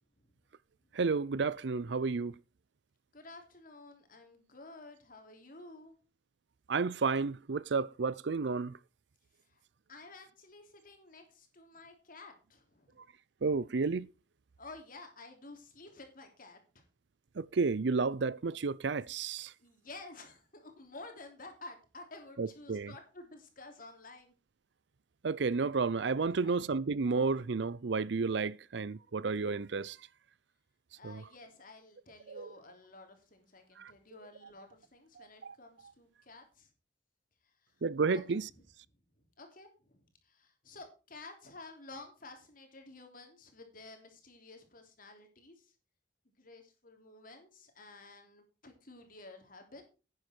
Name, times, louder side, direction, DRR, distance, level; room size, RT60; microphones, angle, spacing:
voice 1, 0.9-2.3 6.7-8.8 13.4-14.1 17.4-19.5 22.4-22.9 25.2-30.0 31.0-31.2 32.3-32.5 33.8-33.9 35.2-35.5 37.8-38.5, right 4 dB, 65° right, 0.5 m, -32 dB
voice 2, 3.1-5.9 9.5-9.6 9.9-13.0 14.6-16.8 19.6-24.3 26.2-26.6 30.9-36.7 38.1-38.4 39.4-45.7 46.4-49.8, left 2 dB, 50° left, 3.3 m, -52 dB
11.0 x 9.6 x 4.4 m
head